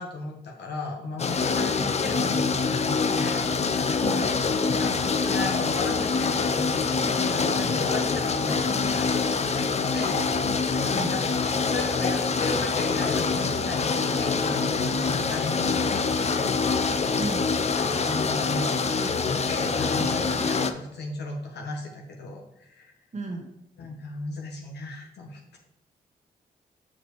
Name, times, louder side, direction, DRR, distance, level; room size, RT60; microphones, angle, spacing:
voice 1, 0.0-2.5 2.7-4.2 4.6-9.5 9.9-16.6 17.8-22.9 23.8-25.6, left 3 dB, 80° left, 0 dB, 1.2 m, -36 dB
sound 1, 1.2-20.7, left 4 dB, 40° left, 0.5 m, -25 dB
voice 2, 4.0-4.3 10.9-11.1 17.2-17.5 23.1-23.5, right 2 dB, 45° right, 1 dB, 1.1 m, -33 dB
7.3 x 5.0 x 3.2 m, 0.84 s
supercardioid pair, 50°, 17 cm